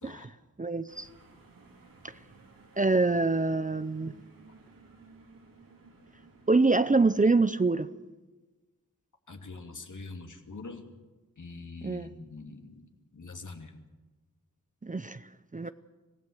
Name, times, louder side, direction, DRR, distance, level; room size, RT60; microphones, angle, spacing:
voice 1, 0.6-1.1 2.0-2.1 2.8-4.1 6.5-7.9 11.8-12.1 14.8-15.3 15.5-15.7, right 3 dB, 25° right, 13 dB, 0.7 m, -25 dB
sound 1, 0.9-7.1, right 3 dB, 80° right, 3.7 m, -56 dB
voice 2, 9.3-10.8 11.4-13.8 15.6-15.7, left 3 dB, 60° left, 4 dB, 2.7 m, -44 dB
25.5 x 17.0 x 8.1 m, 1.2 s
wide cardioid pair, 95°, 33 cm